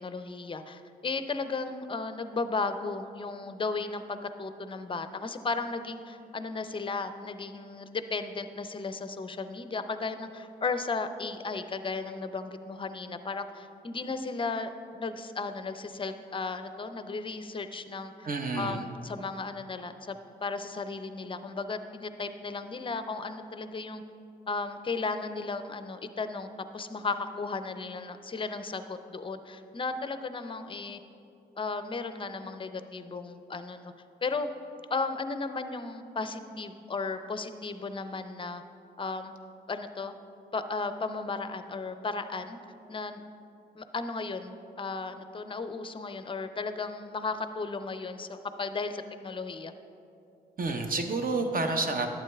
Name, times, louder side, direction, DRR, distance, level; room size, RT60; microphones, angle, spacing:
voice 1, 0.0-18.3 18.6-24.0 24.5-31.0 31.6-33.9 34.2-34.5 34.9-38.6 39.0-39.3 39.7-40.1 40.5-42.6 42.9-43.2 43.7-49.7, left 4 dB, 25° left, 10 dB, 0.5 m, -35 dB
voice 2, 18.2-18.8 50.6-52.1, right 3 dB, 40° right, 5 dB, 0.8 m, -29 dB
12.0 x 7.4 x 2.3 m, 2.6 s
hypercardioid pair, 40°, 21 cm